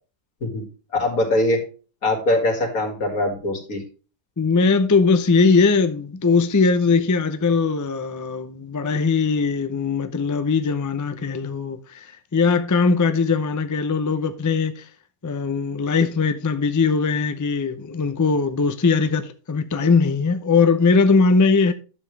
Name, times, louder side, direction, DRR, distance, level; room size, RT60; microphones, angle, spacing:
voice 1, 0.9-1.6 2.0-3.8, left 1 dB, 85° left, 2.8 m, -22 dB
voice 2, 4.4-14.9 15.2-21.7, left 4 dB, 25° left, 0.4 m, -20 dB
11.0 x 7.1 x 3.3 m
omnidirectional pair, 1.5 m